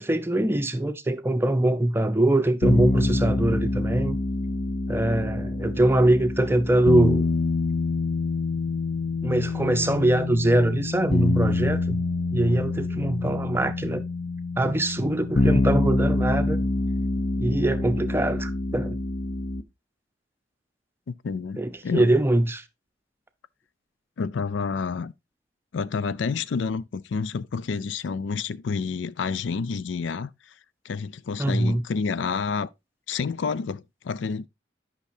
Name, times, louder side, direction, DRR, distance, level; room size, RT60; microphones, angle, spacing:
voice 1, 0.0-4.2 4.9-7.3 9.2-12.0 12.3-14.0 14.6-16.6 17.4-19.0 21.6-22.6 31.4-31.8, right 1 dB, 15° right, 0.6 m, -23 dB
sound 1, 2.6-19.6, left 2 dB, 55° left, 0.8 m, -26 dB
voice 2, 21.2-22.1 24.2-25.1 25.7-30.3 30.8-32.7 33.1-34.5, left 5 dB, 80° left, 0.4 m, -29 dB
11.5 x 5.8 x 2.7 m
head